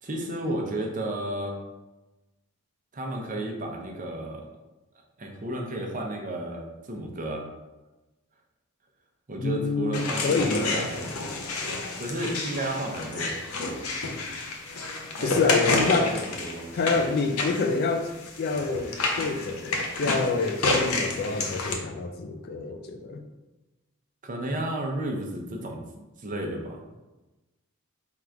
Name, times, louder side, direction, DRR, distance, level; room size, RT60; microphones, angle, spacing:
voice 1, 0.0-1.6 2.9-4.4 5.2-7.5 9.3-11.2 12.0-13.3 15.2-17.0 24.2-27.0, right 1 dB, 35° right, 1 dB, 0.6 m, -33 dB
voice 2, 9.4-10.9 15.2-16.1 16.7-18.1 18.4-23.2, left 4 dB, 45° left, 6 dB, 0.3 m, -27 dB
sound 1, 9.9-21.7, left 3 dB, 85° left, 0.6 m, -30 dB
3.7 x 2.4 x 4.4 m, 1.1 s
head